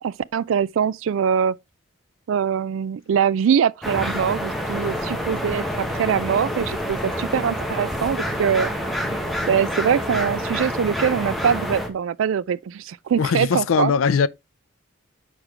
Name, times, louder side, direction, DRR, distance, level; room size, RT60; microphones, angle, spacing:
voice 1, 0.0-1.6 2.3-8.7 9.5-13.9, right 7 dB, 70° right, 0.3 m, -23 dB
sound 1, 3.8-11.9, equal, ahead, 1.0 m, -27 dB
voice 2, 13.2-14.3, left 6 dB, 75° left, 0.4 m, -20 dB
6.5 x 4.7 x 3.6 m
head